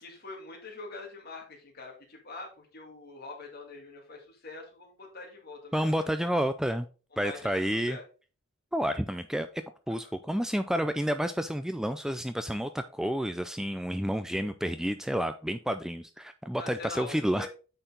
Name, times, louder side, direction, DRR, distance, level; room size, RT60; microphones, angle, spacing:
voice 1, 0.0-6.0 7.1-8.0 16.6-17.5, left 3 dB, 50° left, 0 dB, 2.6 m, -44 dB
voice 2, 5.7-6.9 7.2-8.0 8.7-9.5 9.9-17.5, equal, 5° right, 9 dB, 0.3 m, -30 dB
8.8 x 4.5 x 3.8 m, 0.35 s
head